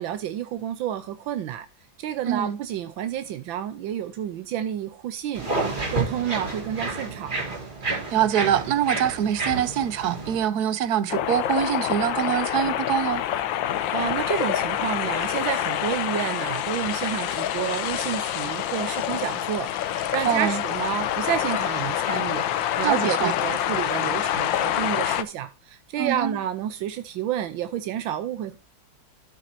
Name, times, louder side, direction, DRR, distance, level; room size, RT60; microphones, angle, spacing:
voice 1, 0.0-1.7 2.0-7.4 13.9-22.4 22.8-28.6, right 10 dB, 85° right, 1.5 m, -30 dB
voice 2, 2.2-2.6 7.8-13.2 20.2-20.6 22.8-23.3 26.0-26.4, right 9 dB, 65° right, 1.1 m, -24 dB
sound 1, 5.3-10.4, right 3 dB, 25° right, 2.5 m, -30 dB
sound 2, 11.1-25.2, left 11 dB, 80° left, 1.4 m, -26 dB
12.0 x 8.5 x 2.7 m
omnidirectional pair, 2.1 m